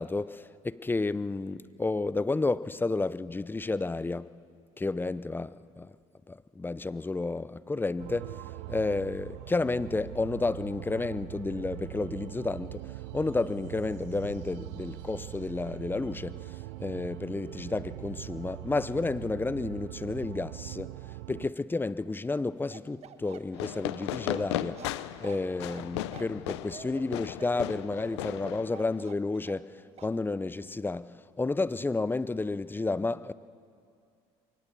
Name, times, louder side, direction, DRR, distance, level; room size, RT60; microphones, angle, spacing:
voice 1, 0.0-4.3 4.8-5.9 6.3-8.4 8.7-12.8 13.1-21.0 21.3-24.8 25.2-33.3, left 3 dB, 15° left, 0.6 m, -31 dB
sound 1, 8.0-21.5, right 19 dB, 80° right, 0.4 m, -42 dB
Bark, 22.7-29.7 30.0-30.2, right 9 dB, 50° right, 1.3 m, -49 dB
Fireworks, 23.5-29.1, left 14 dB, 90° left, 0.6 m, -36 dB
23.0 x 18.5 x 7.0 m
hypercardioid pair, 70°, 14 cm